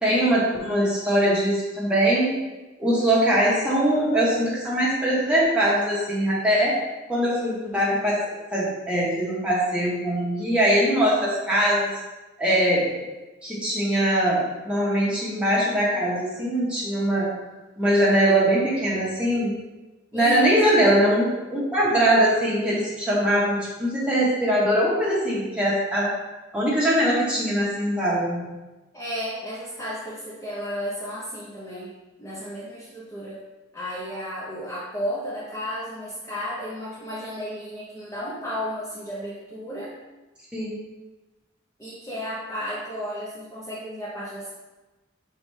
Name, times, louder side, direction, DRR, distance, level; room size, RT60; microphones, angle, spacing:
voice 1, 0.0-2.3 2.8-6.7 7.1-8.2 8.5-12.0 12.4-12.9 13.4-17.3 17.8-19.5 20.1-26.1 26.5-28.5 40.5-40.8, right 1 dB, 5° right, -8 dB, 1.1 m, -22 dB
voice 2, 20.1-20.9 28.9-31.9 32.2-33.4 33.7-39.9 41.8-44.5, equal, 15° left, -9 dB, 0.7 m, -33 dB
4.8 x 3.2 x 3.2 m, 1.1 s
head